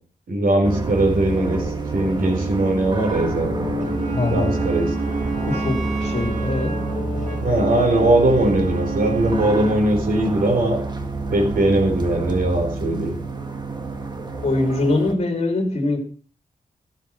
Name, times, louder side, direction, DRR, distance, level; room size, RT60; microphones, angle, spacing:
voice 1, 0.3-1.6 1.9-3.6 4.3-4.9 7.4-10.8 11.3-13.2, right 1 dB, 80° right, 3 dB, 4.2 m, -20 dB
sound 1, 0.6-15.1, right 2 dB, 30° right, 1.8 m, -28 dB
sound 2, 2.8-9.6 10.0-10.1, left 1 dB, 10° left, 4.5 m, -35 dB
Wind instrument woodwind instrument, 3.8-9.8, right 7 dB, 60° right, 1.9 m, -33 dB
voice 2, 4.1-4.6 5.5-6.8 14.4-16.0, left 2 dB, 45° left, 5 dB, 2.8 m, -23 dB
13.5 x 13.0 x 4.5 m, 0.37 s
wide cardioid pair, 175°, 14 cm